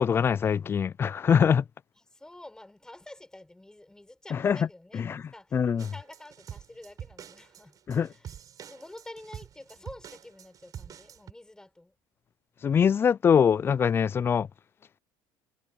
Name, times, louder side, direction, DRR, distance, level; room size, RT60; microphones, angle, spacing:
voice 1, 0.0-1.6 4.3-4.7 4.9-5.9 7.9-8.1 12.6-14.5, left 7 dB, 25° left, 0.3 m, -23 dB
voice 2, 2.1-7.8 8.1-8.3 8.7-11.9, left 1 dB, 10° left, 4.8 m, -48 dB
sound 1, 5.8-11.3, right 9 dB, 40° right, 6.3 m, -46 dB
cardioid pair, 120°, 9 cm